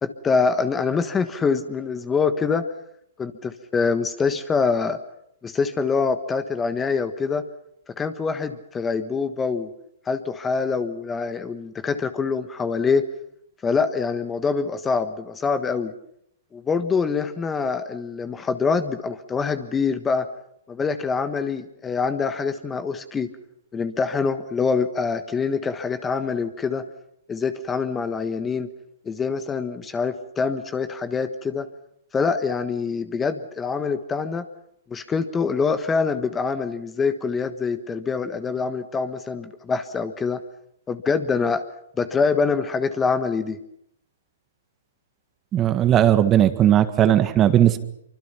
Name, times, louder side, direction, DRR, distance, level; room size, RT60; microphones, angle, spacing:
voice 1, 0.0-2.7 3.2-5.0 5.4-7.4 8.0-9.7 10.1-13.0 13.6-15.9 16.5-20.3 20.7-23.3 23.7-26.9 27.3-28.7 29.0-31.7 32.1-34.4 34.9-40.4 40.9-41.6 42.0-43.6, left 5 dB, 15° left, 10 dB, 1.4 m, -25 dB
voice 2, 45.5-47.8, right 11 dB, 25° right, 10 dB, 1.7 m, -17 dB
25.5 x 24.5 x 5.8 m, 0.74 s
hypercardioid pair, 125°, 0 cm